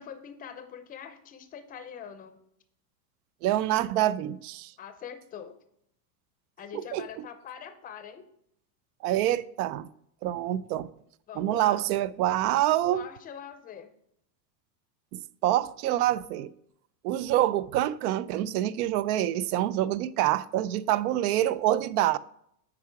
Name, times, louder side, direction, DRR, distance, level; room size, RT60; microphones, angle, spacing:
voice 1, 0.0-2.4 4.8-5.6 6.6-8.2 11.3-11.8 12.9-13.9, left 8 dB, 20° left, 0.6 m, -43 dB
voice 2, 3.4-4.7 6.7-7.0 9.0-9.9 10.2-10.9 11.4-13.1 15.4-16.5 17.0-22.2, right 13 dB, 65° right, 0.5 m, -26 dB
8.4 x 4.8 x 4.7 m
supercardioid pair, 135°, 50 cm